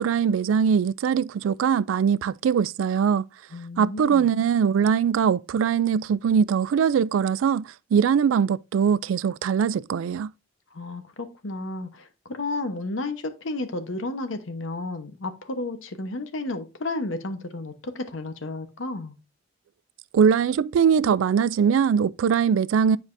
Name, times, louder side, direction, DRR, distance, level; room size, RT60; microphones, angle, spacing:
voice 1, 0.0-3.2 3.8-10.3 20.1-23.0, right 7 dB, 80° right, 0.3 m, -21 dB
voice 2, 3.5-4.3 10.7-19.2, left 2 dB, 75° left, 0.9 m, -32 dB
9.6 x 4.8 x 2.6 m
head